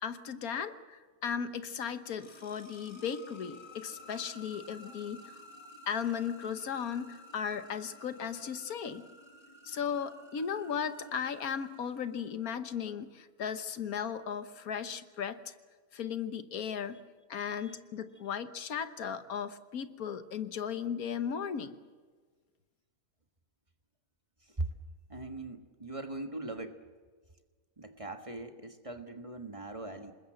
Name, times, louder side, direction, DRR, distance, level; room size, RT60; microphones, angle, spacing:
voice 1, 0.0-5.4 5.9-9.1 9.6-15.5 15.9-17.0 17.3-21.8, left 7 dB, 80° left, 11 dB, 1.6 m, -36 dB
sound 1, 1.8-12.6, left 1 dB, 20° left, 1.7 m, -53 dB
voice 2, 25.1-26.8 27.8-30.1, right 2 dB, 25° right, 6 dB, 1.5 m, -40 dB
26.5 x 20.5 x 7.8 m, 1.5 s
omnidirectional pair, 1.5 m